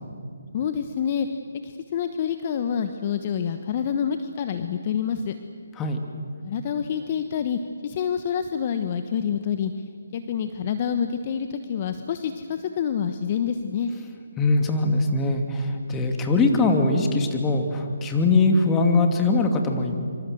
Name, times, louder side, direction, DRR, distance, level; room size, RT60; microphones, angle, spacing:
voice 1, 0.5-1.3 1.6-5.3 6.4-9.7 10.1-13.9, left 8 dB, 35° left, 8 dB, 1.2 m, -27 dB
voice 2, 14.4-20.0, left 3 dB, 15° left, 4 dB, 2.6 m, -21 dB
26.0 x 25.0 x 7.9 m, 2.3 s
figure-of-eight pair, 145°, 0 cm